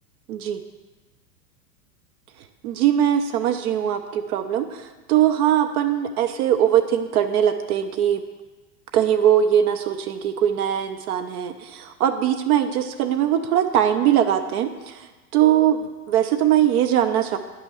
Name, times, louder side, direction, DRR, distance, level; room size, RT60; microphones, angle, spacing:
voice 1, 0.3-0.6 2.6-8.2 8.9-15.1 15.3-17.4, right 10 dB, 65° right, 6 dB, 0.9 m, -21 dB
9.8 x 6.1 x 6.3 m, 1.2 s
hypercardioid pair, 105°, 48 cm